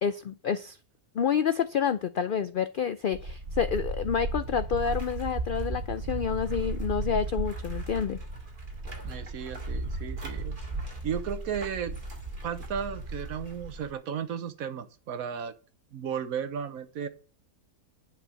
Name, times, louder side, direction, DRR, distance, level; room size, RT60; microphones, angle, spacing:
voice 1, 0.0-0.8 1.2-8.2, left 7 dB, 90° left, 12 dB, 0.4 m, -28 dB
sound 1, 3.1-13.9, right 2 dB, 35° right, 2.2 m, -35 dB
voice 2, 9.0-10.5 11.0-12.0 12.4-15.5 15.9-17.1, right 8 dB, 75° right, 12 dB, 1.3 m, -34 dB
10.0 x 5.0 x 6.4 m, 0.37 s
omnidirectional pair, 1.5 m